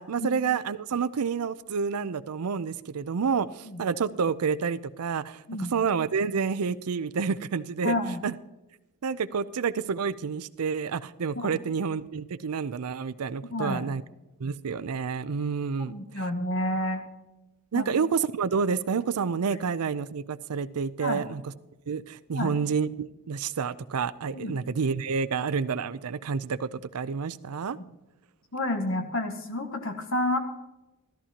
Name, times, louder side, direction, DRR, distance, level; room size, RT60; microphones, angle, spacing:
voice 1, 0.0-5.4 5.7-8.0 8.2-8.3 9.0-14.0 14.4-16.2 17.7-21.4 21.9-27.8, right 5 dB, 85° right, 15 dB, 0.5 m, -29 dB
voice 2, 7.8-8.2 11.4-11.5 13.5-13.8 15.9-17.0 17.7-17.9 21.0-21.2 22.3-22.5 24.3-24.5 28.5-30.4, left 1 dB, 60° left, 5 dB, 1.6 m, -29 dB
14.0 x 14.0 x 2.9 m, 1.1 s
head